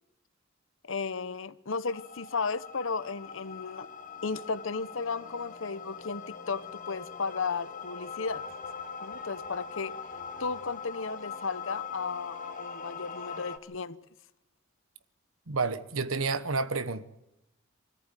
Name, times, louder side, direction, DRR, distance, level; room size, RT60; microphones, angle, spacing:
voice 1, 0.8-3.9 4.2-8.4 9.0-9.9 10.4-14.0, left 4 dB, 70° left, 0.9 m, -34 dB
sound 1, 1.9-13.6, left 6 dB, 40° left, 1.3 m, -42 dB
sound 2, 7.6-11.0, left 2 dB, 5° right, 3.3 m, -58 dB
voice 2, 15.5-17.0, right 4 dB, 85° right, 1.2 m, -30 dB
25.0 x 14.0 x 9.2 m
head